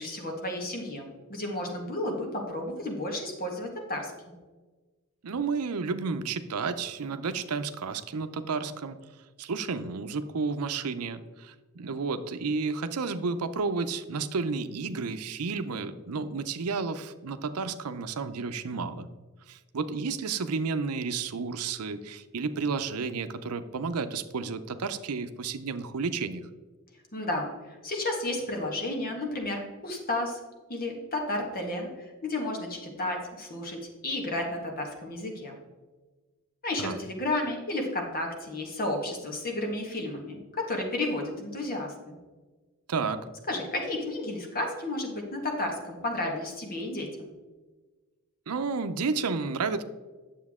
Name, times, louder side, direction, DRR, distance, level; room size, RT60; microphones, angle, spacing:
voice 1, 0.0-4.4 27.1-30.4 30.7-35.6 36.6-42.2 43.5-47.3, left 1 dB, 40° left, 2 dB, 1.6 m, -32 dB
voice 2, 5.2-9.0 9.4-19.1 19.5-26.4 36.8-37.0 42.9-43.3 48.5-49.8, right 4 dB, 80° right, 10 dB, 0.6 m, -31 dB
9.5 x 7.1 x 3.6 m, 1.3 s
head